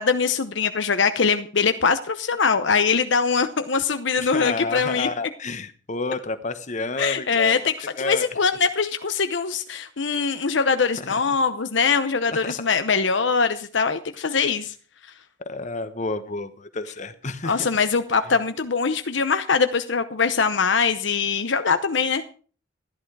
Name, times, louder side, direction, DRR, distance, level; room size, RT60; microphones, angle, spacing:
voice 1, 0.0-5.1 7.0-14.7 17.4-22.2, left 5 dB, 65° left, 9 dB, 0.8 m, -22 dB
voice 2, 4.2-7.6 8.0-8.3 11.0-11.1 12.4-12.5 15.4-17.7, left 3 dB, 40° left, 10 dB, 1.2 m, -30 dB
14.5 x 11.0 x 4.7 m, 0.40 s
head